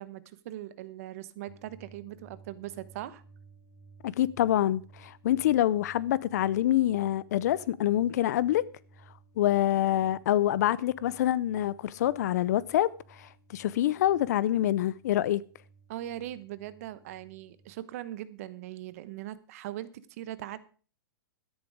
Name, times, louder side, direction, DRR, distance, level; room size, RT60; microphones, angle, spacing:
voice 1, 0.0-3.2 15.9-20.6, right 13 dB, 40° right, 1.0 m, -40 dB
sound 1, 1.5-17.7, right 4 dB, ahead, 3.8 m, -57 dB
voice 2, 4.0-8.7 9.4-12.9 13.2-15.4, left 13 dB, 45° left, 0.5 m, -26 dB
13.0 x 10.5 x 4.9 m
hypercardioid pair, 170°, 12 cm